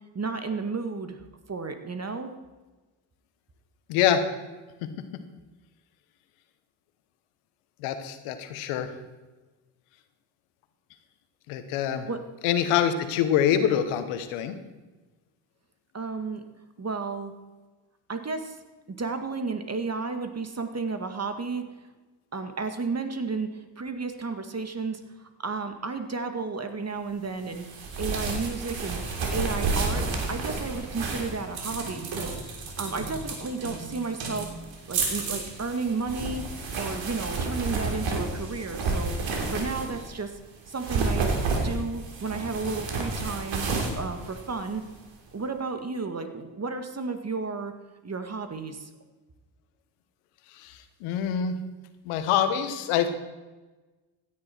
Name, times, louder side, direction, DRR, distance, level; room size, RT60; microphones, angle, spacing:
voice 1, 0.1-1.2 1.5-2.3 12.1-12.2 15.9-16.4 16.8-17.3 18.1-18.6 18.9-21.7 22.3-29.0 29.3-34.5 34.9-36.5 36.7-39.2 39.5-40.3 40.7-41.3 41.6-44.8 45.3-47.7 48.0-48.9, right 4 dB, 30° right, 7 dB, 2.0 m, -32 dB
voice 2, 3.9-4.3 4.8-4.9 7.8-8.9 11.5-12.1 12.4-14.6 50.6-51.6 52.0-53.1, left 9 dB, 80° left, 9 dB, 1.4 m, -25 dB
sound 1, 27.5-40.1 40.7-45.0, right 3 dB, 65° right, 3.2 m, -31 dB
16.5 x 10.5 x 4.5 m, 1.2 s
hypercardioid pair, 55°, 49 cm